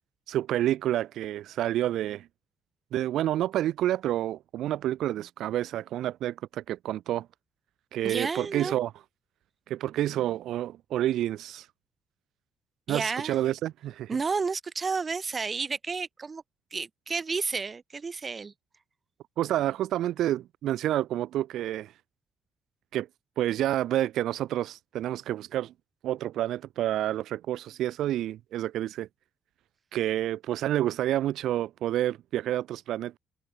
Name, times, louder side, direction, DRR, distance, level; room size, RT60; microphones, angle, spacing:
voice 1, 0.3-2.3 2.9-7.3 7.9-8.9 9.7-11.7 12.9-14.1 19.4-21.9 22.9-23.1 23.4-25.7 26.0-29.1 29.9-33.2, right 13 dB, 80° right, 1.7 m, -29 dB
voice 2, 8.0-8.8 12.9-13.4 14.1-16.4 16.7-18.5, right 4 dB, 35° right, 6.2 m, -31 dB
cardioid pair, 90°, 0 cm